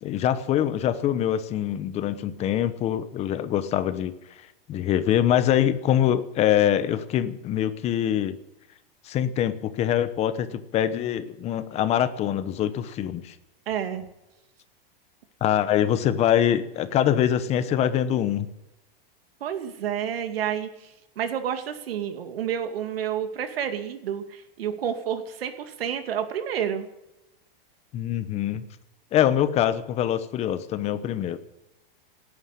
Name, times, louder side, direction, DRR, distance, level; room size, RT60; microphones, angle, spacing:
voice 1, 0.0-4.1 4.7-8.4 9.0-13.3 15.4-18.5 27.9-28.6 29.1-31.4, left 10 dB, 20° left, 13 dB, 0.9 m, -24 dB
voice 2, 13.7-14.1 19.4-26.9, right 9 dB, 85° right, 7 dB, 2.5 m, -30 dB
17.5 x 9.8 x 8.4 m, 0.92 s
supercardioid pair, 160°, 29 cm